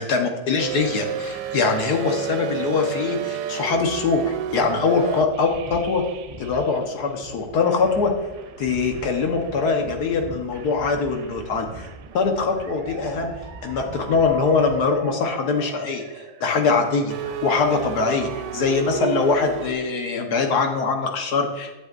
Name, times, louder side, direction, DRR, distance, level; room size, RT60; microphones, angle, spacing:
voice 1, 0.0-6.0 6.4-8.1 8.6-11.9 12.1-13.3 13.6-16.0 16.4-21.7, left 4 dB, 70° left, 3 dB, 1.6 m, -22 dB
sound 1, 0.6-7.1 7.6-19.7, right 7 dB, 85° right, 1.2 m, -35 dB
sound 2, 5.0-14.9, right 2 dB, 20° right, 2.5 m, -42 dB
11.0 x 7.1 x 2.5 m, 1.1 s
omnidirectional pair, 1.8 m